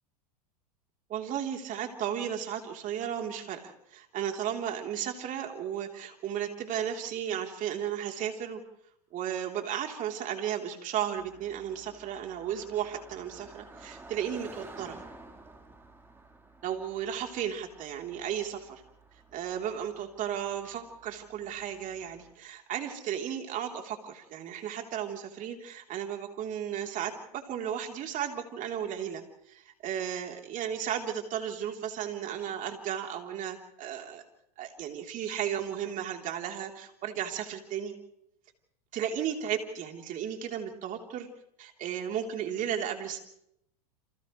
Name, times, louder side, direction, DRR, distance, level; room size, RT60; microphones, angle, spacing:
voice 1, 1.1-8.6 9.1-15.0 16.6-18.8 19.3-34.2 34.6-37.9 38.9-41.3 41.6-43.2, right 9 dB, 40° right, 3 dB, 3.7 m, -34 dB
Car passing by, 11.2-22.3, right 2 dB, 10° right, 4.1 m, -52 dB
29.5 x 27.5 x 3.3 m, 0.75 s
hypercardioid pair, 100°, 20 cm